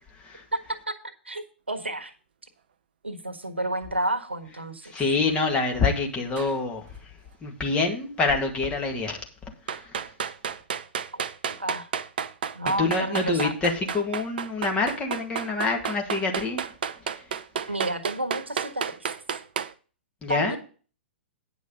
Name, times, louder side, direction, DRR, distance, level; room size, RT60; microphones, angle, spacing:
voice 1, 1.2-2.1 3.0-4.9 11.1-11.2 11.6-11.9 12.5-13.5 17.7-19.1 20.3-20.6, right 1 dB, 80° right, 8 dB, 1.5 m, -30 dB
voice 2, 4.9-6.9 7.4-9.2 9.7-9.9 12.8-16.7 20.2-20.6, left 3 dB, 15° left, 2 dB, 2.0 m, -26 dB
sound 1, 6.4-6.6 9.7-19.7, right 7 dB, 55° right, 0.7 m, -31 dB
9.6 x 6.2 x 5.4 m, 0.37 s
figure-of-eight pair, 110°, 6 cm